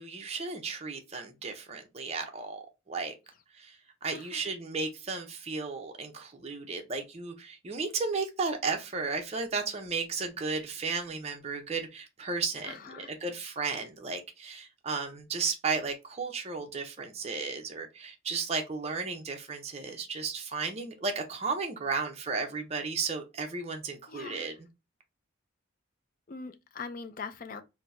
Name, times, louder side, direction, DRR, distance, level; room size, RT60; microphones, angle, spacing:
voice 1, 0.0-3.1 3.6-3.8 4.0-24.5, right 4 dB, 30° right, 0.5 m, -34 dB
voice 2, 4.1-4.5 12.6-13.1 24.1-24.5 26.3-27.6, left 5 dB, 40° left, 0.4 m, -42 dB
4.3 x 2.0 x 2.5 m
head